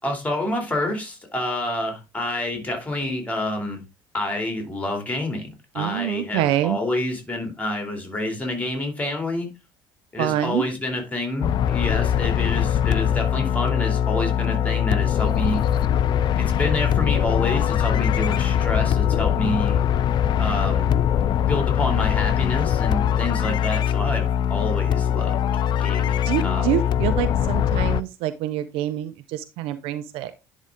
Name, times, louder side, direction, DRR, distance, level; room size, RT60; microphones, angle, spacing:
voice 1, 0.0-3.8 4.1-9.5 10.1-15.6 16.4-19.8 20.2-21.0 21.5-25.4 25.7-26.7, left 1 dB, 15° left, 3 dB, 2.9 m, -28 dB
voice 2, 5.7-6.8 10.2-10.6 26.2-30.4, right 12 dB, 60° right, 12 dB, 0.5 m, -26 dB
sound 1, 11.4-28.0, left 9 dB, 45° left, 0.4 m, -22 dB
10.5 x 3.7 x 3.5 m, 0.26 s
figure-of-eight pair, 60°, 11 cm